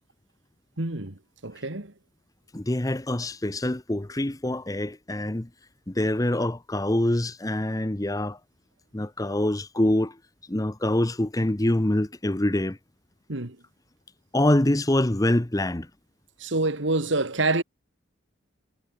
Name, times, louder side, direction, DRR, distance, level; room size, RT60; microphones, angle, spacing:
voice 1, 0.8-1.9 13.3-13.6 16.4-17.6, right 2 dB, 70° right, 2.2 m, -27 dB
voice 2, 2.5-5.5 5.9-8.4 8.9-10.2 10.5-12.8 14.3-15.9, left 1 dB, 20° left, 0.8 m, -25 dB
head